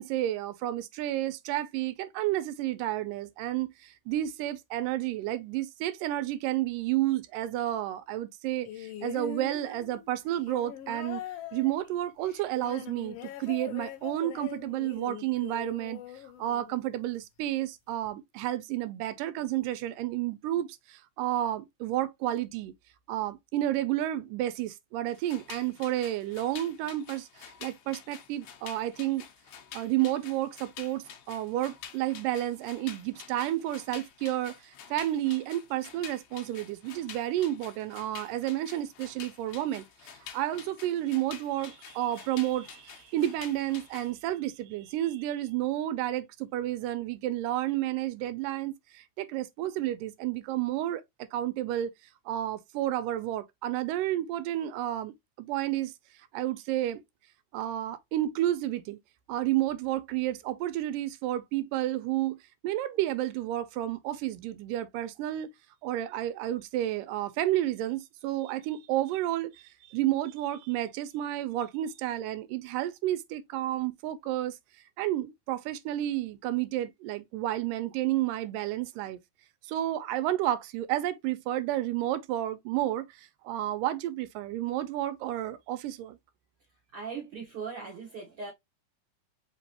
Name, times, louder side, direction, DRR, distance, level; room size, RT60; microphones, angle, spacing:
voice 1, 0.0-11.2 11.5-16.0 16.4-22.7 23.1-29.3 29.7-51.0 51.3-51.9 52.3-55.9 56.3-57.0 57.5-59.0 59.3-62.4 62.6-65.5 65.8-74.6 75.0-79.2 79.7-86.2, right 13 dB, 90° right, 2.2 m, -31 dB
sound 1, 8.7-17.0 18.1-18.2, left 9 dB, 85° left, 1.3 m, -42 dB
sound 2, 25.1-44.1, left 9 dB, 70° left, 2.0 m, -48 dB
voice 2, 86.7-88.5, right 5 dB, 55° right, 1.7 m, -39 dB
5.1 x 3.0 x 2.9 m
omnidirectional pair, 3.8 m